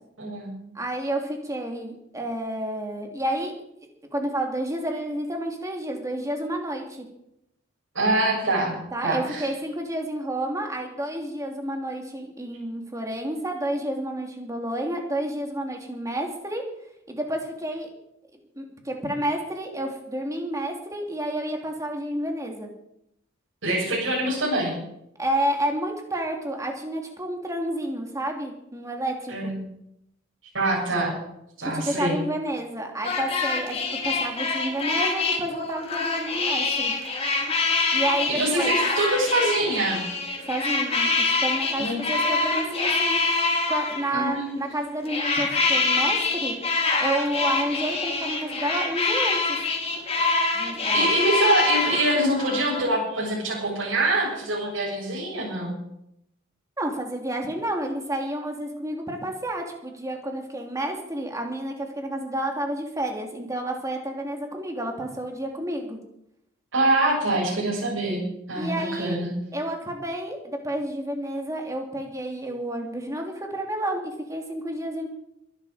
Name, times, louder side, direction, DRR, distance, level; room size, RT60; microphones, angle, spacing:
voice 1, 0.2-0.5 8.0-8.8 9.0-9.4 23.6-24.8 29.3-29.6 30.5-31.1 31.6-32.2 38.3-40.0 41.8-42.0 44.1-44.6 50.9-55.7 66.7-68.2 68.5-69.3, right 1 dB, 75° right, -6 dB, 6.9 m, -24 dB
voice 2, 0.7-3.5 4.1-7.0 8.9-16.6 17.1-17.9 18.5-22.7 25.2-29.5 31.6-36.9 37.9-38.8 40.5-43.2 43.7-46.5 47.0-49.6 50.5-51.1 56.8-66.0 68.6-69.2 69.5-75.1, right 1 dB, 15° right, 2 dB, 2.9 m, -30 dB
sound 1, 33.0-44.4 45.1-52.8, left 3 dB, 30° left, 3.0 m, -25 dB
23.0 x 11.5 x 5.1 m, 0.80 s
head